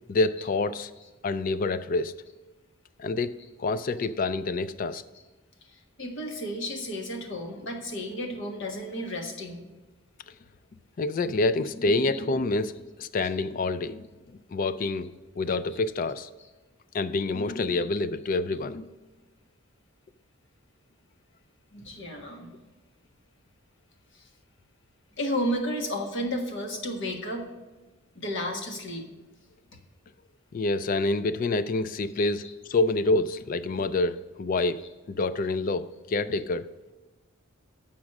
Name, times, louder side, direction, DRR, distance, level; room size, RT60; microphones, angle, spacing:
voice 1, 0.1-0.9 1.2-2.1 3.0-3.3 3.6-5.0 11.0-12.7 13.0-14.1 14.5-15.1 15.4-16.3 16.9-18.9 30.5-34.8 35.1-36.7, left 3 dB, 40° left, 14 dB, 0.3 m, -27 dB
voice 2, 5.6-9.6 12.1-12.2 13.2-13.5 15.7-15.8 16.4-16.5 17.2-17.3 17.8-18.0 21.7-22.5 24.1-24.3 25.2-27.5 28.1-29.0 31.0-31.1 32.1-32.5 34.8-34.9 36.3-36.4, equal, 55° left, 2 dB, 1.3 m, -33 dB
7.2 x 6.0 x 6.3 m, 1.2 s
head